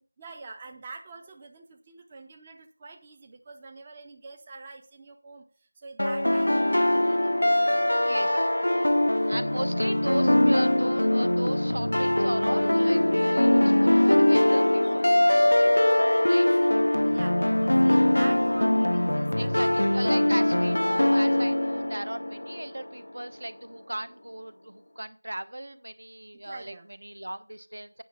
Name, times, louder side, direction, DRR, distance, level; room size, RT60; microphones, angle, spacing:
voice 1, 0.2-8.4 8.7-9.8 14.8-19.8 26.4-26.9, right 3 dB, 15° right, 4 dB, 0.5 m, -46 dB
sound 1, 6.0-22.9, left 1 dB, 75° left, 0.4 m, -22 dB
voice 2, 8.0-8.4 9.3-15.4 15.7-15.8 16.3-16.5 19.3-26.7 27.0-28.0, right 1 dB, 70° right, 13 dB, 1.1 m, -36 dB
9.0 x 5.9 x 5.8 m, 0.43 s
figure-of-eight pair, 175°, 0 cm